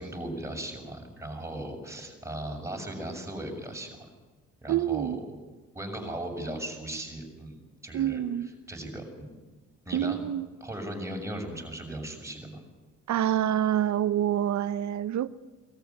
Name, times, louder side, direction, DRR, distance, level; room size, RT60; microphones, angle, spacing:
voice 1, 0.0-4.0 4.6-5.2 5.7-8.2 8.7-9.3 9.8-10.2 10.6-12.6, right 1 dB, 10° right, 6.5 m, -37 dB
voice 2, 4.7-5.2 7.9-8.5 9.9-10.5 13.1-15.3, right 11 dB, 65° right, 0.9 m, -27 dB
21.0 x 14.0 x 9.8 m
cardioid pair, 90°, 30 cm